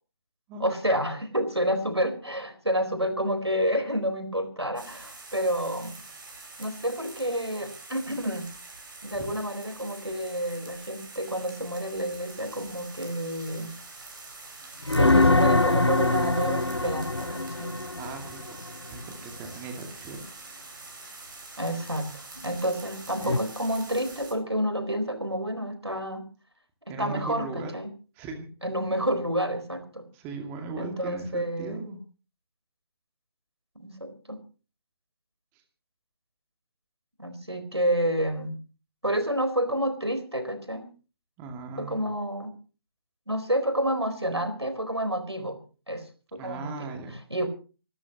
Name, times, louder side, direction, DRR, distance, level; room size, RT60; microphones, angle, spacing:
voice 1, 0.6-5.9 6.6-8.5 9.0-13.7 14.9-17.8 21.6-26.3 26.9-27.9 28.6-30.1 30.8-31.8 33.8-34.4 37.2-38.5 39.0-40.9 41.8-42.5 43.3-45.6 45.9-46.9 47.3-47.5, equal, 85° right, 9 dB, 4.3 m, -29 dB
sound 1, 4.8-24.3, right 3 dB, 50° right, 7.9 m, -45 dB
sound 2, 14.8-18.7 23.2-23.4, left 2 dB, 90° left, 0.7 m, -23 dB
voice 2, 18.0-18.6 18.9-20.2 26.9-27.7 28.2-28.5 30.1-32.0 35.5-35.6 41.4-42.1 46.4-47.2, right 3 dB, 15° right, 4 dB, 2.3 m, -38 dB
27.0 x 13.0 x 3.0 m, 0.36 s
figure-of-eight pair, 145°, 14 cm